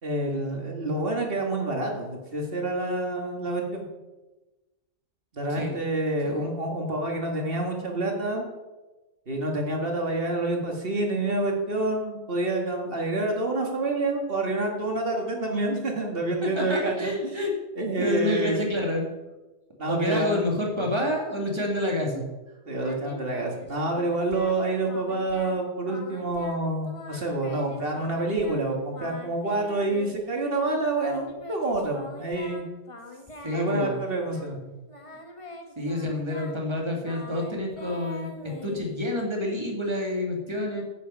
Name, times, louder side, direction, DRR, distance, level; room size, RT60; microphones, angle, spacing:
voice 1, 0.0-3.8 5.3-8.5 9.3-17.4 17.8-18.7 19.8-20.4 20.8-20.9 22.7-32.6 33.5-34.6, right 2 dB, 40° right, 1 dB, 2.1 m, -28 dB
voice 2, 16.4-19.0 19.9-22.3 33.4-34.0 35.8-40.8, left 1 dB, 20° right, 0 dB, 2.2 m, -28 dB
Singing, 22.8-24.6 24.9-25.6 25.8-26.6 26.8-28.6 28.9-30.4 31.0-34.6 34.9-39.3, left 1 dB, 25° left, 1.2 m, -43 dB
10.5 x 8.5 x 5.4 m, 1.1 s
omnidirectional pair, 1.5 m